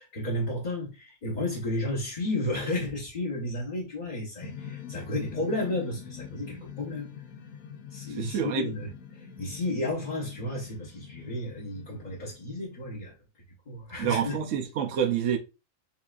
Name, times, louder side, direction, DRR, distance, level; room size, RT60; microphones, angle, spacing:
voice 1, 0.0-7.1 7.9-13.1 13.7-14.4, left 1 dB, 30° left, 1.1 m, -32 dB
sound 1, 4.4-12.8, left 7 dB, 65° left, 0.9 m, -44 dB
voice 2, 8.1-8.6 14.0-15.4, right 8 dB, 60° right, 0.9 m, -27 dB
7.0 x 2.7 x 2.4 m
omnidirectional pair, 1.7 m